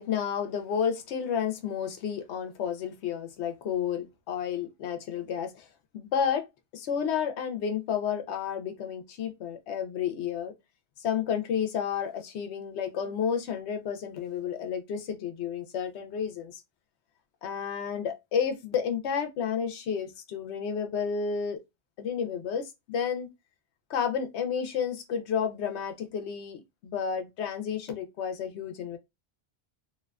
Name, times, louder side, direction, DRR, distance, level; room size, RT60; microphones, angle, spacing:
voice 1, 0.0-5.7 5.9-6.5 6.7-10.5 11.0-16.6 17.4-21.6 22.0-23.3 23.9-29.0, left 7 dB, 85° left, 0.9 m, -31 dB
2.6 x 2.2 x 2.2 m
omnidirectional pair, 1.1 m